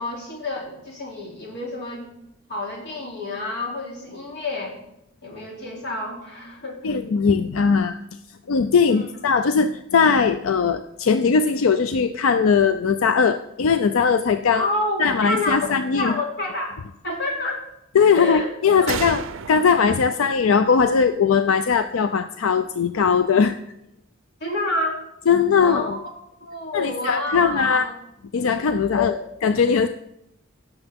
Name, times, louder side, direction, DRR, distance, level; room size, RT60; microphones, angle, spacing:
voice 1, 0.0-2.1 2.5-4.7 5.2-6.8 8.9-9.1 14.5-16.7 17.0-17.6 18.1-18.9 24.4-25.0 25.5-26.1 26.4-27.9 29.0-29.1, left 2 dB, 55° left, -2 dB, 3.0 m, -28 dB
voice 2, 6.8-8.0 8.5-14.7 15.0-16.1 17.9-19.2 19.5-23.6 25.3-26.0 26.7-27.9 28.3-29.1 29.4-29.9, left 5 dB, 90° left, 10 dB, 0.4 m, -19 dB
sound 1, 18.9-22.4, right 7 dB, 70° right, 0.5 m, -35 dB
16.0 x 7.0 x 3.6 m, 0.82 s
head